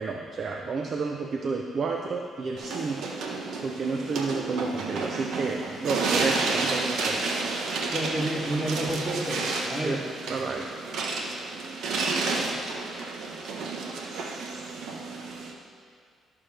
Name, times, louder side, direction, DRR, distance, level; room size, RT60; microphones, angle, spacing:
voice 1, 0.0-3.1 3.6-7.3 9.8-10.0 10.3-10.7, right 4 dB, 50° right, 2 dB, 0.7 m, -31 dB
sound 1, 2.6-15.5, right 3 dB, 75° right, 1.2 m, -31 dB
voice 2, 7.9-10.0, right 1 dB, 35° right, -3 dB, 2.8 m, -30 dB
18.0 x 6.9 x 3.4 m, 2.1 s
cardioid pair, 90°, 0 cm